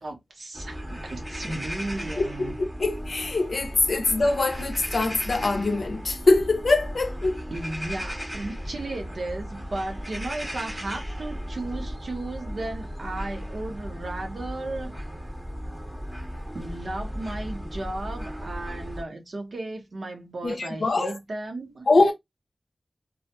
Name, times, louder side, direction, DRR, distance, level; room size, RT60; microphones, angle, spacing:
voice 1, 0.0-2.5 7.5-14.9 16.5-21.9, right 2 dB, 80° right, 0.8 m, -35 dB
sound 1, 0.5-19.0, equal, 10° right, 0.7 m, -36 dB
voice 2, 2.2-7.4 20.4-21.2 21.9-22.1, left 3 dB, 75° left, 0.5 m, -23 dB
2.3 x 2.1 x 2.6 m
wide cardioid pair, 60°, 0 cm